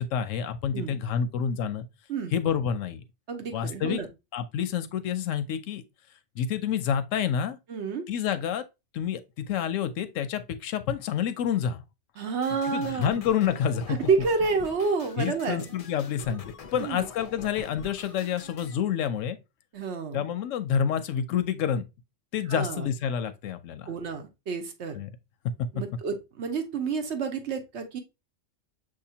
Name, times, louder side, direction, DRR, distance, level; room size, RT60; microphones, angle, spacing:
voice 1, 0.0-1.9 2.3-3.0 3.5-4.0 4.3-5.8 6.4-7.6 8.1-8.6 8.9-9.2 9.5-11.8 12.7-13.8 15.2-16.4 16.7-19.4 20.1-21.8 22.3-23.9 24.9-25.1, left 8 dB, 90° left, 1.0 m, -28 dB
voice 2, 3.3-4.1 7.7-8.0 12.2-13.2 13.9-15.7 16.8-17.1 19.7-20.3 22.5-22.9 23.9-24.9 25.7-28.0, right 5 dB, 65° right, 1.1 m, -29 dB
sound 1, 12.4-18.8, left 4 dB, 50° left, 0.4 m, -45 dB
6.4 x 2.8 x 2.7 m
omnidirectional pair, 1.3 m